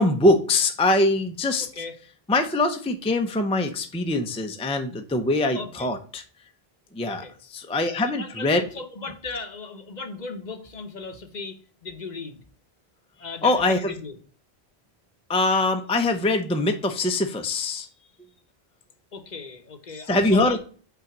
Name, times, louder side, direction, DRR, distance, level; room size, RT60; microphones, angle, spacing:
voice 1, 0.0-1.7 2.3-6.2 6.9-7.2 7.5-8.6 13.4-13.9 15.3-17.9 20.1-20.6, left 2 dB, 5° left, 5 dB, 0.5 m, -23 dB
voice 2, 1.6-2.0 5.5-5.9 7.0-7.3 8.0-12.4 13.2-14.2 19.1-20.6, left 4 dB, 45° left, 7 dB, 0.9 m, -37 dB
5.9 x 3.9 x 5.9 m, 0.41 s
omnidirectional pair, 1.1 m